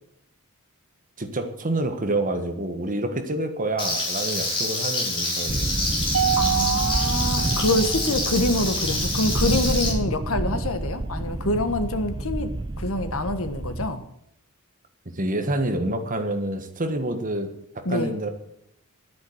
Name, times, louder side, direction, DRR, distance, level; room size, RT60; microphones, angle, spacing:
voice 1, 1.2-5.7 15.1-18.3, right 1 dB, 40° right, 7 dB, 1.5 m, -27 dB
Frying (food), 3.8-9.9, left 2 dB, 25° left, 5.2 m, -27 dB
sound 1, 5.5-13.9, right 2 dB, 20° right, 0.6 m, -29 dB
Mallet percussion, 6.1-8.6, right 8 dB, 60° right, 0.7 m, -27 dB
voice 2, 6.4-14.0 17.8-18.1, left 1 dB, 65° left, 8 dB, 1.5 m, -26 dB
11.5 x 9.5 x 8.0 m, 0.77 s
head